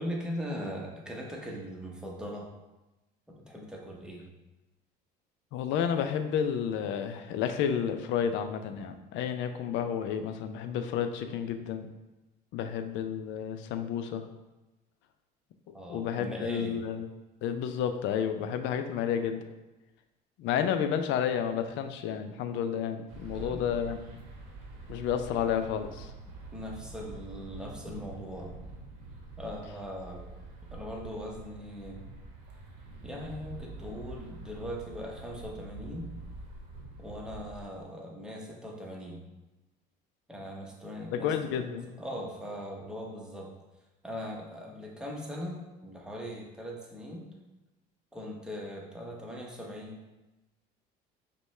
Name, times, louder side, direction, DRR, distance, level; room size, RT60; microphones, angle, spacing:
voice 1, 0.0-2.5 3.3-4.2 15.7-16.8 23.3-23.7 26.5-28.5 29.4-30.3 30.7-32.0 33.0-36.1 37.0-39.2 40.3-43.5 44.0-47.3 48.1-49.9, equal, 5° right, -1 dB, 0.8 m, -40 dB
voice 2, 5.5-11.9 12.5-14.2 15.9-17.1 17.4-19.4 20.4-24.2 24.9-26.1 41.1-41.9, left 8 dB, 65° left, 8 dB, 0.4 m, -31 dB
sound 1, 23.1-37.6, right 3 dB, 85° right, 0.9 m, -46 dB
5.2 x 2.2 x 3.2 m, 1.0 s
supercardioid pair, 90°, 21 cm